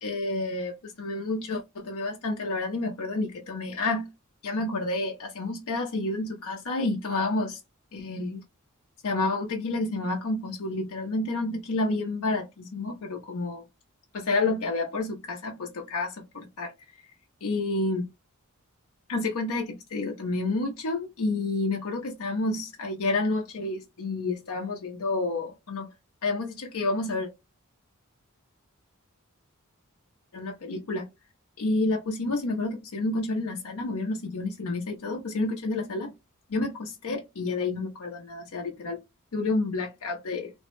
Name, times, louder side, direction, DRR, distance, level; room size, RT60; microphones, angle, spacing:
voice 1, 0.0-4.1 4.4-7.6 7.9-8.4 9.0-13.6 14.1-16.7 17.4-18.1 19.1-25.9 26.2-27.3 30.3-31.1 31.6-36.1 36.5-39.0 39.3-40.5, left 2 dB, 75° left, 0.6 m, -29 dB
3.4 x 2.1 x 3.0 m
head